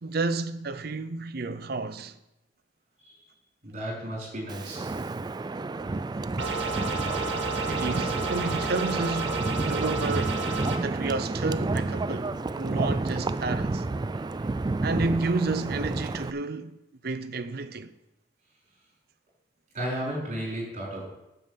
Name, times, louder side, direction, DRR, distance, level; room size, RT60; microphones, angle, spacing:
voice 1, 0.0-2.2 7.7-10.4 10.8-13.8 14.8-16.8 17.0-17.9, right 3 dB, 60° right, 0.7 m, -31 dB
voice 2, 3.6-4.9 14.3-14.5 19.7-21.1, right 1 dB, 40° right, 4.4 m, -34 dB
Wind, 4.5-16.3, right 2 dB, 25° right, 0.3 m, -30 dB
sound 1, 6.4-10.8, right 3 dB, 80° right, 1.7 m, -31 dB
9.0 x 7.1 x 7.3 m
head